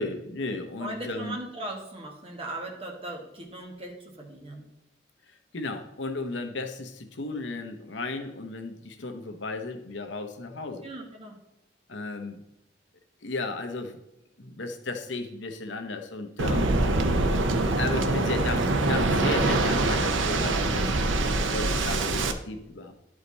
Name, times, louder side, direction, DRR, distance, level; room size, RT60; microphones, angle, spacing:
voice 1, 0.0-1.4 5.5-10.8 11.9-12.4 13.2-14.0 14.4-16.7 17.8-20.9 21.4-22.9, left 3 dB, 75° left, 6 dB, 0.9 m, -34 dB
voice 2, 0.8-4.6 10.8-11.4 16.5-17.0, right 1 dB, 30° right, 0 dB, 1.6 m, -38 dB
Waves surf, 16.4-22.3, right 2 dB, 85° right, 0.7 m, -24 dB
11.0 x 5.0 x 4.1 m, 0.88 s
head